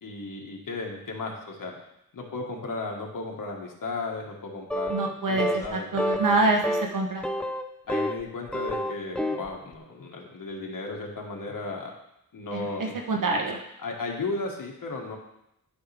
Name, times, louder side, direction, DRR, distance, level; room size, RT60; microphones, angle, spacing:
voice 1, 0.0-1.7 2.1-6.5 7.9-11.9 12.3-13.0 13.8-15.2, left 3 dB, 70° left, 0 dB, 1.6 m, -35 dB
sound 1, 4.7-5.1 5.4-5.7 6.0-6.4 6.6-6.9 7.2-8.2 8.5-9.5, equal, 5° left, 0.4 m, -28 dB
voice 2, 4.9-7.3 12.5-13.6, right 2 dB, 65° right, 2 dB, 1.0 m, -26 dB
11.0 x 5.4 x 3.4 m, 0.81 s
wide cardioid pair, 100°, 34 cm